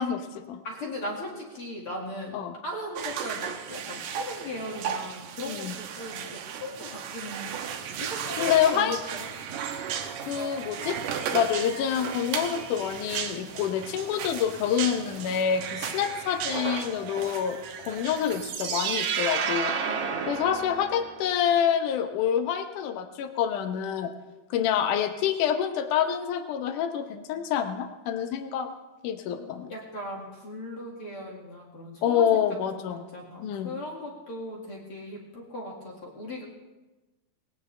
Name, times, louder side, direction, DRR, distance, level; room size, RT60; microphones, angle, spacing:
voice 1, 0.0-0.6 2.3-2.5 5.5-5.8 8.4-9.0 10.2-11.0 11.3-17.6 17.9-19.7 20.3-24.1 24.5-28.7 29.0-29.7 32.0-33.0 33.4-33.8, left 9 dB, 70° left, 8 dB, 2.0 m, -27 dB
voice 2, 0.6-7.5 8.0-9.3 19.4-20.2 29.7-32.3 32.7-36.4, left 1 dB, 45° left, -2 dB, 2.2 m, -38 dB
sound 1, 3.0-18.5, right 8 dB, 70° right, 2.1 m, -35 dB
sound 2, 18.2-21.3, right 6 dB, 85° right, 3.5 m, -30 dB
19.5 x 17.5 x 3.3 m, 1.1 s
omnidirectional pair, 4.6 m